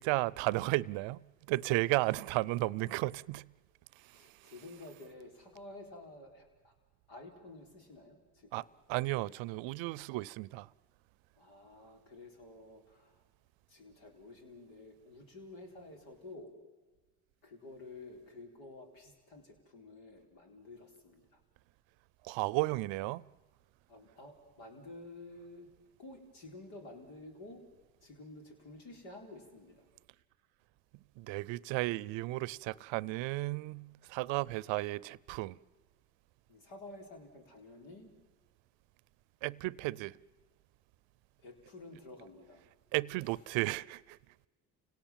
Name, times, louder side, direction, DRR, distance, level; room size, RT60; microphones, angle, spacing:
voice 1, 0.0-3.5 4.1-4.2 8.5-8.6 8.9-10.7 22.2-23.2 31.2-35.6 39.4-40.2 42.9-44.2, right 20 dB, 75° right, 0.6 m, -34 dB
voice 2, 4.1-6.7 7.1-8.6 11.4-13.2 13.7-16.5 17.4-21.4 23.9-25.7 26.0-27.6 28.0-29.9 36.5-38.1 41.4-42.6 43.2-43.4, left 2 dB, 80° left, 4.3 m, -51 dB
30.0 x 18.0 x 7.5 m
supercardioid pair, 65°, 45 cm